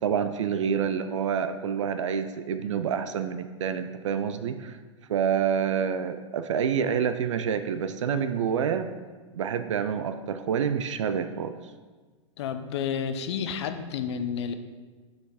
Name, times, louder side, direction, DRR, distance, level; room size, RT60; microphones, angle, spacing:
voice 1, 0.0-4.8 5.1-8.9 9.3-11.7, right 7 dB, 65° right, 10 dB, 0.4 m, -27 dB
voice 2, 12.4-14.5, left 7 dB, 55° left, 8 dB, 0.6 m, -30 dB
6.5 x 4.8 x 4.8 m, 1.4 s
figure-of-eight pair, 100°, 17 cm